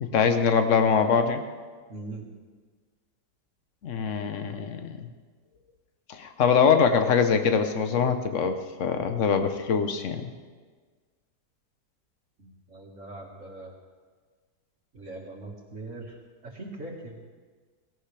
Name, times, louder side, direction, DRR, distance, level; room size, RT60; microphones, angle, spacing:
voice 1, 0.0-1.4 3.8-5.1 6.1-10.3, left 6 dB, 50° left, 7 dB, 1.2 m, -23 dB
voice 2, 1.9-2.3 12.4-13.7 14.9-16.2 16.4-17.2, right 2 dB, 45° right, 0 dB, 2.2 m, -41 dB
17.0 x 17.0 x 3.4 m, 1.5 s
omnidirectional pair, 1.9 m